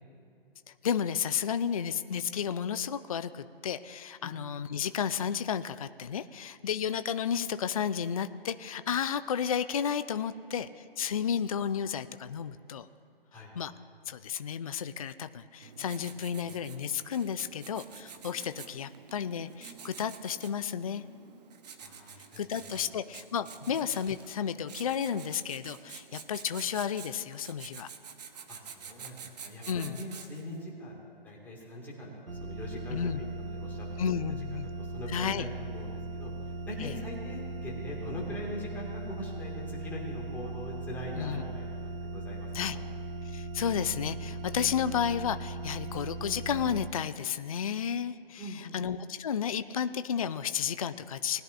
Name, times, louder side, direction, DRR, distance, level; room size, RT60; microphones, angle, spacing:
voice 1, 0.8-12.9 13.6-13.7 14.1-21.0 22.4-27.9 29.7-30.0 32.9-33.2 34.0-34.7 35.1-35.5 36.8-36.9 41.2-41.4 42.5-42.8 43.3-51.4, left 8 dB, 40° left, 11 dB, 0.4 m, -32 dB
Writing, 15.6-30.6, right 6 dB, 45° right, 1.0 m, -48 dB
voice 2, 21.8-22.9 23.6-23.7 28.5-34.2 34.5-42.8 48.4-48.8, left 1 dB, 5° left, -5 dB, 2.0 m, -42 dB
sound 1, 32.3-46.9, right 2 dB, 75° right, 1.0 m, -39 dB
20.0 x 11.0 x 2.5 m, 2.6 s
hypercardioid pair, 150°, 30 cm